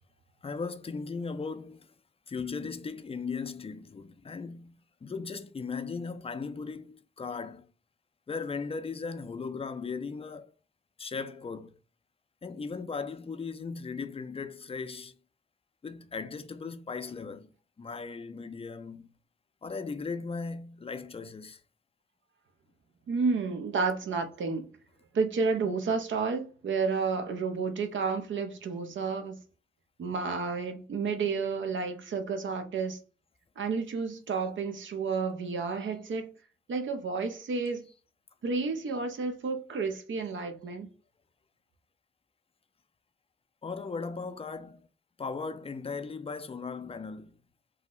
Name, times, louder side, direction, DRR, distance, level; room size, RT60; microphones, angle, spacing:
voice 1, 0.4-1.9 2.3-7.7 8.3-10.5 11.0-11.7 12.4-15.2 15.8-19.1 19.6-21.6 43.6-44.9 45.2-47.3, left 4 dB, 30° left, 0.4 m, -37 dB
voice 2, 23.1-24.7 25.1-29.4 30.0-33.0 33.6-36.3 36.7-37.9 38.4-40.9, right 4 dB, 65° right, 0.6 m, -31 dB
2.7 x 2.0 x 3.7 m
supercardioid pair, 45°, 21 cm